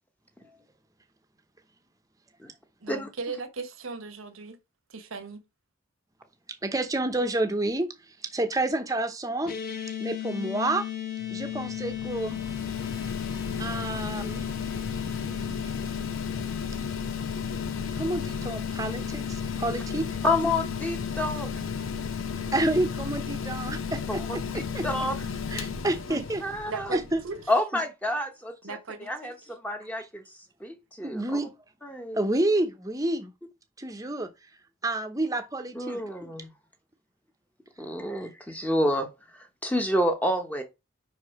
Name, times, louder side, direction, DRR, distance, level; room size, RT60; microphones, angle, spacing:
voice 1, 2.8-4.6 4.9-5.4 26.1-26.2 26.7-27.4 28.6-29.3, right 4 dB, 90° right, 1.2 m, -37 dB
voice 2, 6.6-9.5 10.0-10.9 11.3-12.4 13.6-14.4 17.9-20.1 22.5-24.9 25.5-26.4 26.9-27.2 27.7-27.8 31.0-31.5 32.1-33.3 33.8-34.3 34.8-36.0, right 2 dB, 15° right, 0.8 m, -29 dB
sound 1, 9.5-25.8, left 13 dB, 45° left, 1.3 m, -36 dB
Mechanical fan, 11.2-27.5, left 4 dB, 80° left, 0.7 m, -35 dB
voice 3, 20.2-21.5 24.1-25.1 26.4-26.9 27.5-30.2 30.6-31.4 31.8-32.3 35.7-36.5 37.8-39.1 39.6-40.6, left 1 dB, 5° left, 0.9 m, -29 dB
5.5 x 4.8 x 4.7 m
head